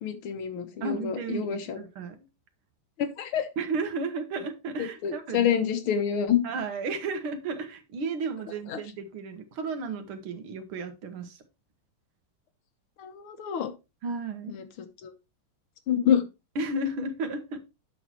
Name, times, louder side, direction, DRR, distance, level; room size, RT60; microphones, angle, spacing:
voice 1, 0.0-1.8 3.0-3.5 5.0-6.4 8.7-8.8 13.0-13.7 14.5-15.1 15.9-16.2, left 8 dB, 85° left, 8 dB, 2.0 m, -27 dB
voice 2, 0.8-2.2 3.6-5.5 6.4-11.4 14.0-14.6 16.6-17.6, right 3 dB, 90° right, 8 dB, 2.1 m, -33 dB
8.6 x 6.3 x 3.0 m, 0.26 s
omnidirectional pair, 2.3 m